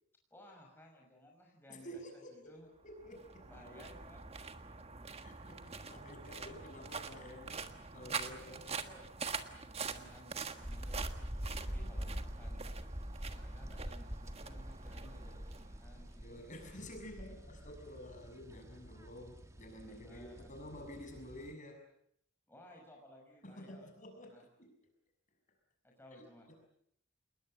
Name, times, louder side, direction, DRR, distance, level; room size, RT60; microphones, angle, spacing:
voice 1, 0.3-1.9 2.3-2.7 3.4-4.2 8.4-9.0 9.5-11.1 11.5-12.7 13.2-16.4 19.8-20.5 22.5-23.9 24.3-24.4 25.8-26.5, equal, 10° left, 0 dB, 6.0 m, -58 dB
voice 2, 1.7-2.5 2.8-3.5 5.2-8.6 11.3-12.4 16.2-21.8 23.4-24.9 26.1-26.6, equal, 40° left, 4 dB, 6.6 m, -51 dB
sound 1, 2.8-16.2, right 5 dB, 30° right, 1.5 m, -45 dB
sound 2, 10.6-21.5, equal, 15° right, 1.6 m, -45 dB
28.5 x 21.0 x 7.8 m, 0.71 s
head